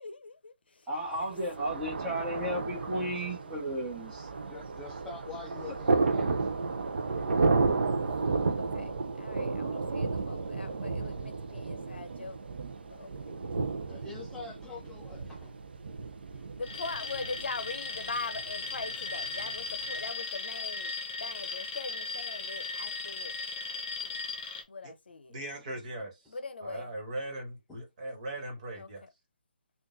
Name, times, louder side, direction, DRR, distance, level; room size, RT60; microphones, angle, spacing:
voice 1, 0.0-0.8 8.7-12.4 12.9-13.3 16.6-20.9 21.2-23.3 24.7-25.3 26.3-26.9 28.8-29.1, left 3 dB, 75° left, 0.6 m, -41 dB
voice 2, 0.9-4.3, equal, 10° right, 1.3 m, -34 dB
Thunder, 1.1-20.0, right 4 dB, 70° right, 0.5 m, -33 dB
voice 3, 4.5-6.6 11.6-11.7 13.2-13.3 13.9-15.6 27.7-27.8, left 4 dB, 5° left, 0.5 m, -46 dB
Alarm, 16.6-24.6, left 4 dB, 30° left, 1.0 m, -37 dB
voice 4, 25.3-26.1 26.6-29.0, right 1 dB, 40° right, 1.5 m, -39 dB
3.7 x 2.4 x 2.6 m
figure-of-eight pair, 150°, 6 cm